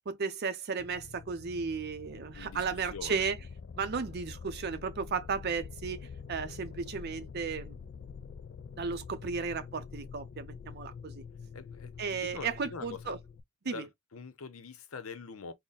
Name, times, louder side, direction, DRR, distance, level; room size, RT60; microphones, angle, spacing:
voice 1, 0.1-3.4 3.8-7.8 8.8-11.2 12.0-13.2 13.6-13.9, right 5 dB, 50° right, 0.5 m, -34 dB
sound 1, 0.8-13.4, left 5 dB, 50° left, 0.3 m, -46 dB
voice 2, 2.9-3.2 11.5-13.2 13.6-15.5, left 5 dB, 85° left, 0.7 m, -44 dB
3.8 x 2.1 x 4.0 m
head